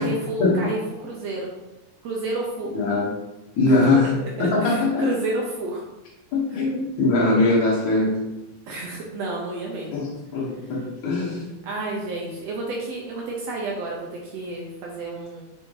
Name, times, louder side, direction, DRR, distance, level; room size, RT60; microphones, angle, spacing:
voice 1, 0.0-1.5 2.0-2.8 3.7-5.8 8.7-10.0 11.6-15.4, right 2 dB, 70° right, -2 dB, 1.6 m, -30 dB
voice 2, 2.7-3.1 3.6-4.1 4.4-5.0 6.3-8.3 9.9-11.4, left 2 dB, 65° left, -7 dB, 2.5 m, -21 dB
5.9 x 4.4 x 3.9 m, 0.97 s
omnidirectional pair, 3.9 m